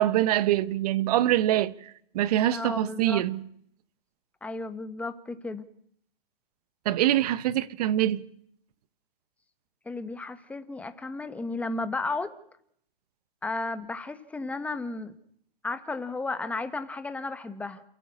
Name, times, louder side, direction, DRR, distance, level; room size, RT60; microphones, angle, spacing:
voice 1, 0.0-3.5 6.8-8.2, right 13 dB, 40° right, 1.0 m, -24 dB
voice 2, 2.5-3.2 4.4-5.6 9.8-12.3 13.4-15.1 15.6-17.8, left 3 dB, 5° left, 1.2 m, -33 dB
28.0 x 15.0 x 8.6 m
hypercardioid pair, 135°, 29 cm